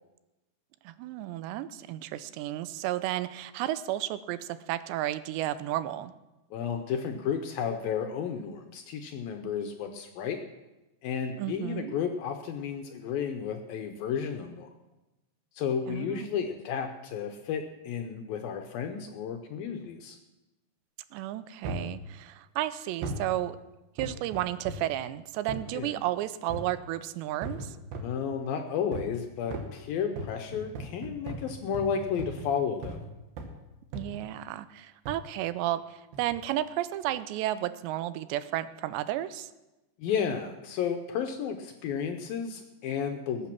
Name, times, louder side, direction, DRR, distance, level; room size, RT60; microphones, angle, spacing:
voice 1, 0.9-6.1 11.4-12.0 15.9-16.4 21.1-23.6 24.0-27.8 33.9-39.5, right 14 dB, 85° right, 14 dB, 2.8 m, -33 dB
voice 2, 6.5-10.4 11.0-14.7 15.6-20.2 25.7-26.0 28.0-33.1 40.0-43.5, left 7 dB, 75° left, 5 dB, 2.3 m, -32 dB
sound 1, 21.6-22.0 23.0-23.3 24.0-24.9 25.5-25.7 26.5-26.8 27.4-28.2 28.9-29.2 29.5-33.1 33.4-33.6 33.9-34.3 35.1-35.3 36.1-36.4 37.0-37.1, right 1 dB, 65° right, 2.9 m, -38 dB
20.5 x 8.4 x 6.0 m, 1.0 s
omnidirectional pair, 5.0 m